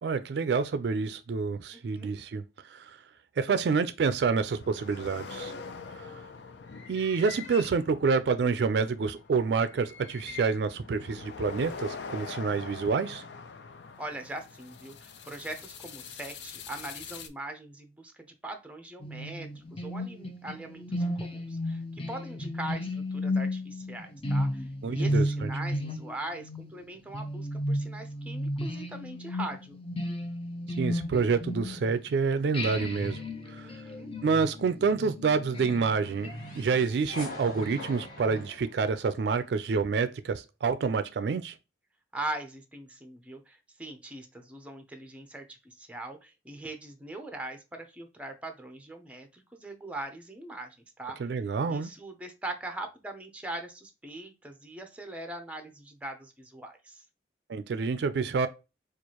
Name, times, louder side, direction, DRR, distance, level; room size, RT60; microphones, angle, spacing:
voice 1, 0.0-3.0 3.4-5.5 6.0-6.1 6.9-13.2 24.8-25.5 30.8-33.2 33.5-33.7 34.2-41.5 51.2-51.9 57.5-58.5, right 5 dB, 70° right, 0.4 m, -28 dB
voice 2, 1.7-2.1 14.0-29.8 33.6-34.1 42.1-51.3 51.7-57.0, right 2 dB, 10° right, 0.5 m, -41 dB
sound 1, 4.4-17.3, left 5 dB, 80° left, 0.5 m, -44 dB
sound 2, 19.0-32.1 32.5-38.4, left 1 dB, 30° left, 0.6 m, -34 dB
sound 3, 35.5-39.6, left 1 dB, 55° left, 1.1 m, -45 dB
4.5 x 2.4 x 2.8 m
head